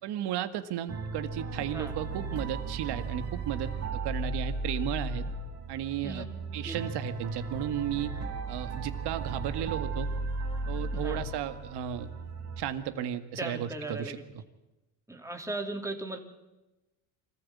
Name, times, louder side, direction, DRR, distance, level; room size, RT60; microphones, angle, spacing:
voice 1, 0.0-5.3 5.7-6.3 6.5-8.1 8.5-10.1 10.7-12.1 12.6-14.2, right 10 dB, 60° right, 10 dB, 1.9 m, -34 dB
sound 1, 0.9-12.6, right 3 dB, 35° right, 3.8 m, -35 dB
voice 2, 1.6-1.9 6.0-6.3 6.6-6.8 10.9-11.2 13.4-14.1 15.1-16.2, right 2 dB, 5° right, 2 dB, 3.3 m, -37 dB
25.5 x 15.0 x 8.7 m, 1.0 s
supercardioid pair, 90°, 44 cm